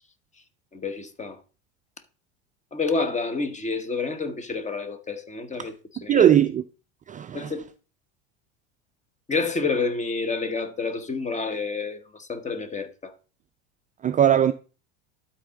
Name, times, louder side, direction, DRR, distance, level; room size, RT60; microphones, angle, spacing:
voice 1, 0.7-1.4 2.7-5.7 6.0-6.3 7.3-7.7 9.3-13.1, left 4 dB, 20° left, 1.3 m, -29 dB
voice 2, 6.1-6.6 7.1-7.5 14.0-14.5, right 10 dB, 25° right, 0.4 m, -19 dB
12.5 x 4.2 x 3.8 m
hypercardioid pair, 95°, 33 cm